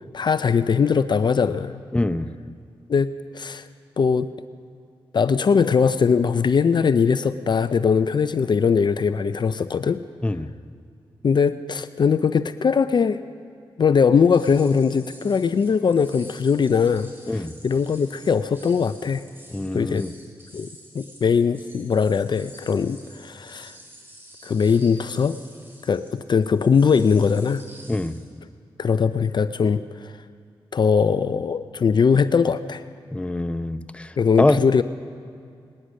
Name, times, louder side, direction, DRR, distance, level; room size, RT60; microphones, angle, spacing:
voice 1, 0.1-1.8 2.9-3.6 4.0-4.3 5.1-10.0 11.2-13.2 13.8-19.2 19.7-20.1 20.5-20.7 20.9-23.7 24.4-25.4 25.8-27.6 28.8-30.1 30.7-32.8 34.2-34.8, left 6 dB, 50° left, 12 dB, 0.5 m, -20 dB
voice 2, 1.9-2.3 10.2-10.5 17.3-17.5 19.5-20.1 27.9-28.2 33.1-34.1 34.4-34.6, left 2 dB, 10° left, 11 dB, 0.6 m, -24 dB
sound 1, 14.3-28.3, equal, 20° right, 4.3 m, -48 dB
20.0 x 9.8 x 6.4 m, 2.3 s
cardioid pair, 55°, 10 cm